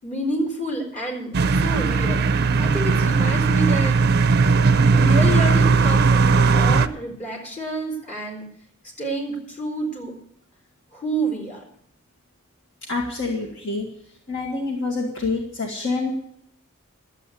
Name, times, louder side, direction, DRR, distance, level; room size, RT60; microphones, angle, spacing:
voice 1, 0.0-2.3 2.6-4.0 4.9-8.5 9.0-10.1 10.9-11.6, right 1 dB, 35° left, -1 dB, 4.2 m, -29 dB
sound 1, 1.3-6.9, right 4 dB, 45° right, 0.5 m, -18 dB
voice 2, 12.9-13.9 14.3-16.1, left 3 dB, 60° left, -1 dB, 1.9 m, -26 dB
12.0 x 8.5 x 8.3 m, 0.70 s
head